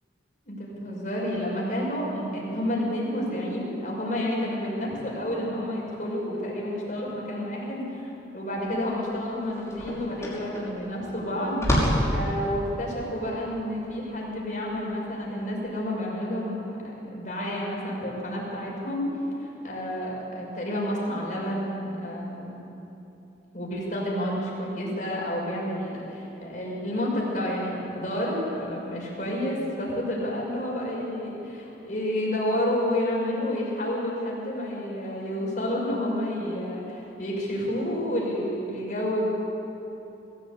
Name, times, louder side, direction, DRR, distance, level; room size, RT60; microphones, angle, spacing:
voice 1, 0.5-19.0 19.4-22.6 23.5-39.2, left 1 dB, 45° left, -3 dB, 6.0 m, -30 dB
sound 1, 8.7-8.8 9.1-15.6, equal, 15° left, 5.7 m, -29 dB
21.5 x 16.5 x 8.6 m, 3.0 s
head